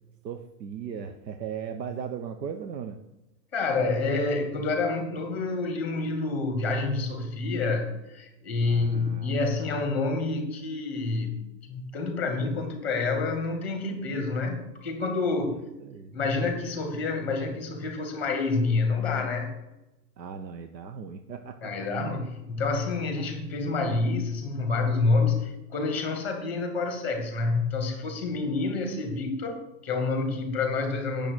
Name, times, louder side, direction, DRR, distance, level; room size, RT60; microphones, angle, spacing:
voice 1, 0.2-3.0 8.6-9.4 15.8-16.2 20.2-21.9, right 7 dB, 80° right, 7 dB, 1.0 m, -37 dB
voice 2, 3.5-15.6 16.1-19.5 21.6-31.3, left 3 dB, 5° left, 5 dB, 1.2 m, -28 dB
8.9 x 6.8 x 6.2 m, 0.95 s
hypercardioid pair, 170°, 50 cm